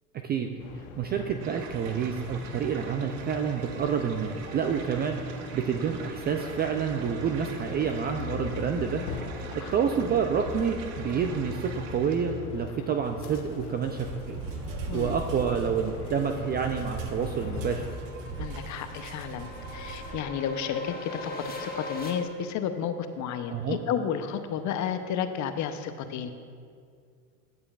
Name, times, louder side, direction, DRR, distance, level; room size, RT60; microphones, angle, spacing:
sound 1, 0.6-18.0, left 6 dB, 65° left, 0.9 m, -41 dB
voice 1, 1.0-5.2 5.5-9.0 9.5-14.4 14.7-17.8 23.5-23.8, right 7 dB, 25° right, 5 dB, 0.3 m, -28 dB
sound 2, 1.4-12.5 12.8-20.2, right 5 dB, 60° right, 1.0 m, -41 dB
sound 3, 16.1-22.1, left 2 dB, 20° left, 1.3 m, -41 dB
voice 2, 18.4-21.3 21.6-26.3, left 8 dB, 40° left, 9 dB, 0.6 m, -32 dB
15.5 x 6.9 x 2.4 m, 2.2 s
hypercardioid pair, 90°, 47 cm